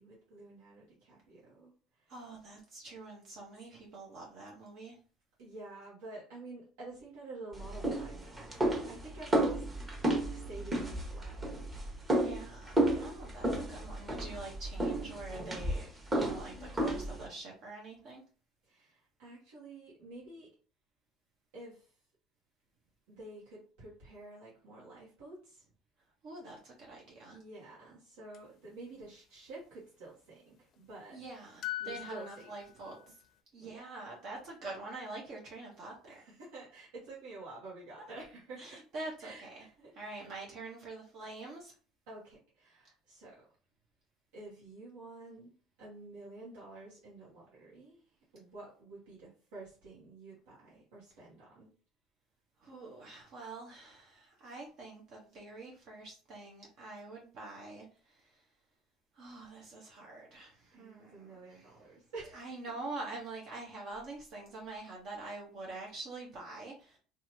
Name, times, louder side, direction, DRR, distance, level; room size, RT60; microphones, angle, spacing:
voice 1, 0.0-2.1 5.4-9.7 10.0-11.5 12.8-13.1 18.6-20.5 21.5-21.9 23.1-25.6 27.3-31.2 31.8-32.5 33.1-33.2 33.6-33.8 36.1-38.8 39.2-40.3 42.1-43.3 44.3-45.5 45.8-48.0 48.3-51.7 60.7-62.6, right 2 dB, 80° right, -7 dB, 1.2 m, -49 dB
voice 2, 2.1-5.0 12.1-18.2 26.2-27.4 31.1-33.2 33.5-36.2 38.0-38.1 38.6-39.6 39.9-41.7 52.6-58.4 59.1-61.8 62.3-67.0, right 2 dB, 60° right, -2 dB, 0.8 m, -46 dB
sound 1, 7.5-17.3, right 1 dB, 25° right, 1.1 m, -33 dB
sound 2, 28.3-28.4 31.6-33.1, left 17 dB, 55° left, 0.4 m, -41 dB
2.7 x 2.4 x 2.7 m, 0.38 s
hypercardioid pair, 75°, 0 cm